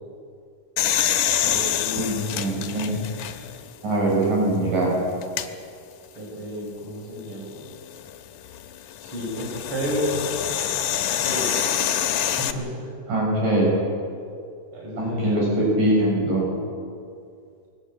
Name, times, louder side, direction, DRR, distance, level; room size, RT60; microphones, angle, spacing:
sound 1, 0.8-3.7 4.2-4.3 5.2-5.5 7.6-12.5, left 10 dB, 75° left, 2.6 m, -26 dB
voice 1, 1.4-2.7 6.2-7.6 9.0-10.3 10.7-10.8 11.2-11.6 12.4-12.9 14.7-15.5, equal, 40° right, -3 dB, 6.3 m, -31 dB
voice 2, 2.0-2.9 3.8-4.9 13.1-13.7 15.0-16.5, right 1 dB, 70° right, -3 dB, 8.2 m, -22 dB
21.5 x 20.0 x 8.8 m, 2.3 s
omnidirectional pair, 4.0 m